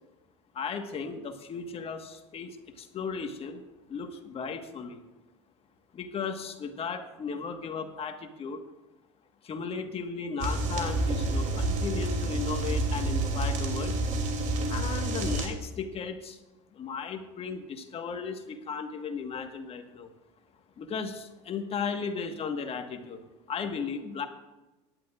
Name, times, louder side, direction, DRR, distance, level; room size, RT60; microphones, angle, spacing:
voice 1, 0.5-3.6 3.9-5.0 5.9-8.6 9.4-13.9 14.7-16.4 16.7-20.1 20.8-23.2 23.5-24.2, left 5 dB, 40° left, 6 dB, 1.6 m, -35 dB
sound 1, 10.4-15.5, right 2 dB, 50° right, 3.0 m, -29 dB
18.0 x 11.0 x 2.5 m, 1.1 s
hypercardioid pair, 85°, 16 cm